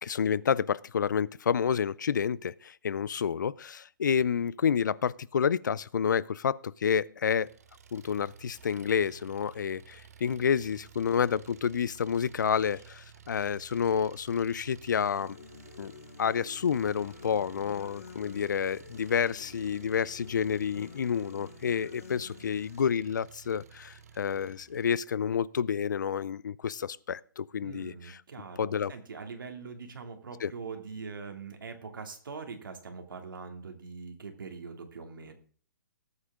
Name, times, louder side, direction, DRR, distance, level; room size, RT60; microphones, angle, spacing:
voice 1, 0.0-7.5 7.9-15.4 15.8-15.9 16.2-28.2 28.6-28.9 30.4-30.5, left 7 dB, 60° left, 0.5 m, -29 dB
Engine, 7.4-25.0, right 7 dB, 45° right, 1.0 m, -53 dB
sound 1, 14.9-22.9, left 6 dB, 40° left, 1.1 m, -50 dB
voice 2, 27.6-35.3, right 5 dB, 75° right, 2.8 m, -42 dB
19.0 x 8.2 x 3.7 m
hypercardioid pair, 180°, 11 cm